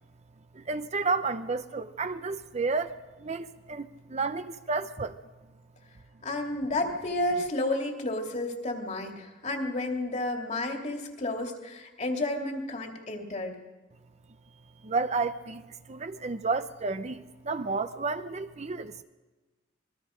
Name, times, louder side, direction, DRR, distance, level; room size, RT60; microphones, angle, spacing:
voice 1, 0.5-5.2 14.8-19.0, right 4 dB, 40° right, 0.7 m, -31 dB
voice 2, 6.2-13.6, left 2 dB, 40° left, 2.6 m, -31 dB
25.5 x 21.5 x 5.1 m
head